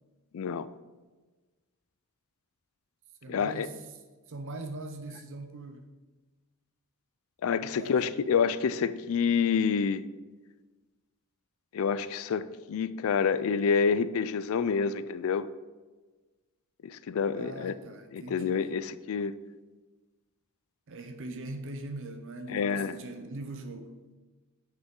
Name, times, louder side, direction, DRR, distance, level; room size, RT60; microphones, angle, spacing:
voice 1, 0.3-0.7 3.3-3.7 7.4-10.0 11.7-15.5 16.8-17.7 18.1-19.3 22.5-23.0, left 6 dB, 65° left, 15 dB, 0.4 m, -28 dB
voice 2, 3.2-3.8 4.3-5.9 7.6-8.0 17.3-18.6 20.9-24.0, right 2 dB, 60° right, 6 dB, 0.7 m, -41 dB
7.9 x 5.7 x 3.7 m, 1.3 s
head